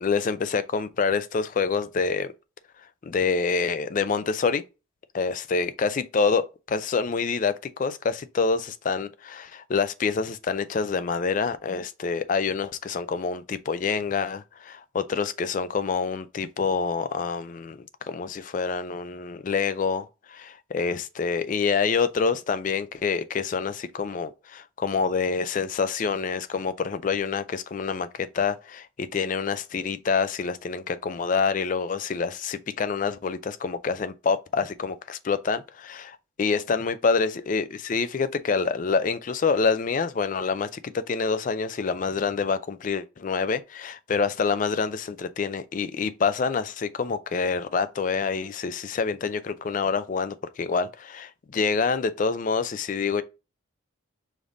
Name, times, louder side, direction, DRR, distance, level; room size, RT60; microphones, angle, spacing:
voice 1, 0.0-2.3 3.0-4.6 5.1-53.2, left 5 dB, 40° left, 0.3 m, -27 dB
5.1 x 2.5 x 3.9 m
head